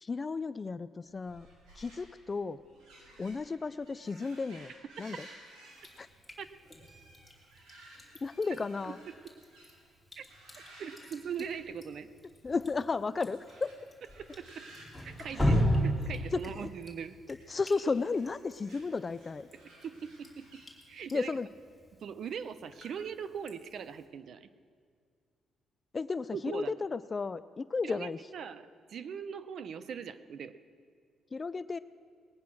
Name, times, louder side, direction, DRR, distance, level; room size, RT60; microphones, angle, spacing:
voice 1, 0.0-1.5 1.8-2.6 3.2-4.7 5.0-5.3 6.0-6.1 8.2-9.0 12.4-13.7 15.3-15.6 16.3-16.7 17.5-19.5 21.1-21.5 25.9-28.2 31.3-31.8, left 4 dB, 30° left, 15 dB, 0.3 m, -33 dB
sound 1, 1.1-9.9 10.2-11.9 12.2-12.6 13.3-16.7 17.6-20.7, right 1 dB, 85° right, 4.3 m, -56 dB
Drip, 5.8-24.1, equal, 5° left, 3.0 m, -38 dB
voice 2, 10.8-12.1 14.2-14.7 15.0-17.2 19.5-20.6 20.9-21.3 22.0-24.5 26.3-26.7 27.8-30.6, right 7 dB, 60° right, 13 dB, 0.7 m, -41 dB
20.0 x 9.5 x 6.1 m, 2.1 s
cardioid pair, 90°, 0 cm